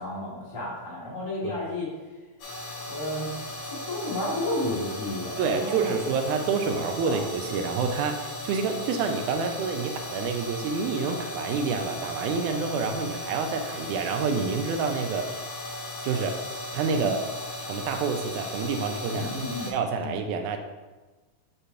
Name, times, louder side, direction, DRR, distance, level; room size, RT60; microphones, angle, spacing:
voice 1, 0.0-1.9 2.8-3.3 3.6-6.2 7.0-7.2 16.9-17.1 19.1-19.7 20.0-20.1, left 1 dB, 15° left, -8 dB, 1.4 m, -32 dB
sound 1, 2.4-19.7, left 1 dB, 80° left, 2.9 m, -37 dB
voice 2, 5.4-15.4 16.0-16.4 16.7-17.3 17.7-19.4 19.7-20.6, right 5 dB, 85° right, 5 dB, 2.0 m, -28 dB
6.6 x 3.0 x 5.6 m, 1.3 s
omnidirectional pair, 3.4 m